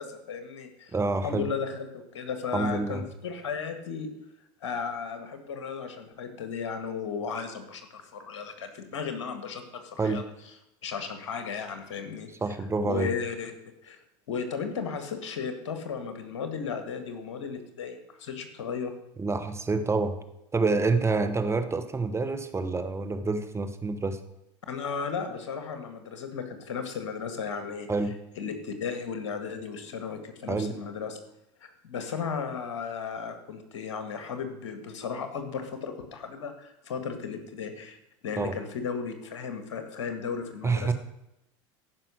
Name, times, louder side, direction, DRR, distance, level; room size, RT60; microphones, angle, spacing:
voice 1, 0.0-0.9 1.2-4.1 4.6-10.2 10.8-12.3 12.8-13.5 13.8-14.0 14.3-18.9 24.7-27.9 28.4-31.2 31.6-38.0 38.2-40.9, left 6 dB, 80° left, 7 dB, 1.8 m, -35 dB
voice 2, 0.9-1.5 2.5-3.1 10.0-10.2 12.4-13.1 19.2-20.2 20.5-24.2 27.9-28.1 30.5-30.7 38.4-38.6 40.6-40.9, right 3 dB, 15° right, 9 dB, 1.1 m, -27 dB
14.0 x 5.8 x 6.3 m, 0.86 s
hypercardioid pair, 90°, 16 cm